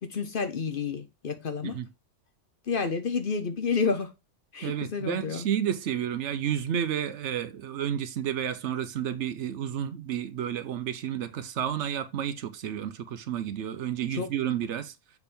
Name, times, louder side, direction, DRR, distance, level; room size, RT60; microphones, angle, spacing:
voice 1, 0.0-1.8 2.7-4.1 4.5-5.5 14.1-14.3, left 5 dB, 50° left, 0.8 m, -30 dB
voice 2, 4.6-14.9, right 9 dB, 70° right, 0.9 m, -31 dB
6.9 x 3.5 x 4.2 m
omnidirectional pair, 1.3 m